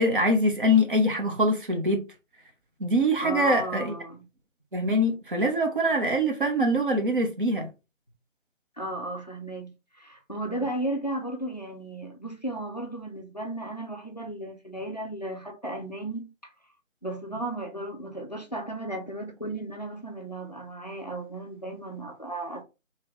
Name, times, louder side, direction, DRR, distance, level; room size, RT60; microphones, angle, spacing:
voice 1, 0.0-2.0 2.8-3.9 4.7-7.7, equal, 40° right, 0.8 m, -24 dB
voice 2, 3.2-4.3 8.8-16.5 17.0-22.6, right 1 dB, 35° left, 0.4 m, -35 dB
2.8 x 2.5 x 3.2 m
figure-of-eight pair, 155°, 39 cm